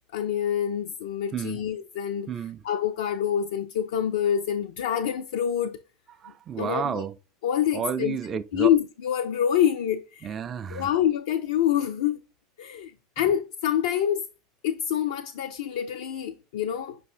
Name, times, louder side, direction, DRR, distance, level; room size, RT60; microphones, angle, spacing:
voice 1, 0.1-2.3 2.6-5.8 6.6-7.0 7.4-8.2 8.5-10.4 10.7-12.2 12.6-12.9 13.2-14.3 14.6-17.0, left 10 dB, 65° left, 0.3 m, -26 dB
voice 2, 2.3-2.6 6.2-7.2 7.7-8.7 10.2-10.9 13.2-13.3, right 7 dB, 30° right, 0.3 m, -31 dB
5.2 x 3.4 x 2.5 m
figure-of-eight pair, 75°, 0 cm